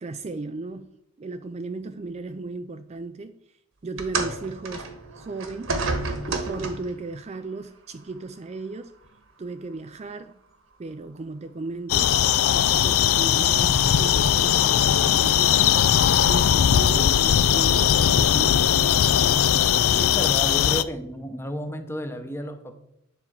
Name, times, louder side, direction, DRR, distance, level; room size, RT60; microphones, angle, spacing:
voice 1, 0.0-3.4 3.8-5.7 6.3-8.9 9.4-10.4 10.8-12.2 12.5-15.8 16.2-18.7, right 3 dB, 30° right, 0.4 m, -35 dB
sound 1, 4.0-7.0 8.0-8.2 9.0-9.1, right 3 dB, 70° right, 1.4 m, -30 dB
sound 2, 11.9-20.8, left 9 dB, 80° left, 0.4 m, -19 dB
voice 2, 19.9-22.7, equal, 10° left, 0.8 m, -32 dB
10.0 x 4.4 x 7.5 m
head